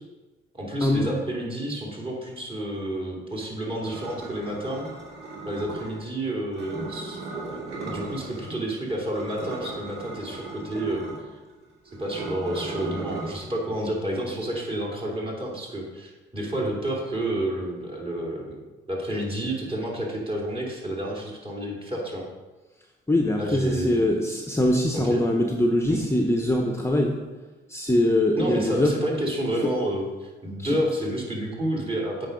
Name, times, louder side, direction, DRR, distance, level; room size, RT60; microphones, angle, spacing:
voice 1, 0.5-4.9 5.5-7.2 7.5-11.3 12.0-22.2 23.4-24.0 24.9-25.2 25.9-26.0 28.4-32.3, right 1 dB, 30° right, -2 dB, 2.9 m, -30 dB
sound 1, 3.8-6.0 6.5-8.6 8.9-13.4, right 3 dB, 60° right, 2.5 m, -36 dB
voice 2, 23.1-27.2 27.7-28.9 30.6-30.8, left 1 dB, 15° left, 2 dB, 0.9 m, -23 dB
8.1 x 5.5 x 5.2 m, 1.2 s
cardioid pair, 90°, 20 cm